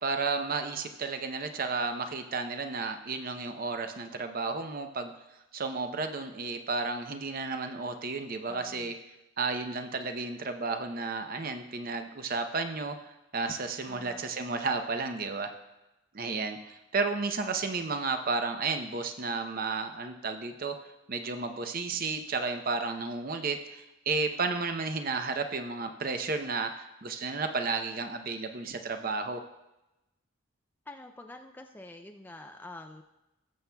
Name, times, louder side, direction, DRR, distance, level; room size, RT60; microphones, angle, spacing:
voice 1, 0.0-5.1 5.5-8.9 9.4-15.5 16.1-29.4, right 4 dB, 40° right, 7 dB, 0.6 m, -32 dB
voice 2, 8.4-8.9 13.9-14.3 30.9-33.0, left 2 dB, 10° left, 5 dB, 0.3 m, -47 dB
18.5 x 7.0 x 2.2 m, 0.97 s
head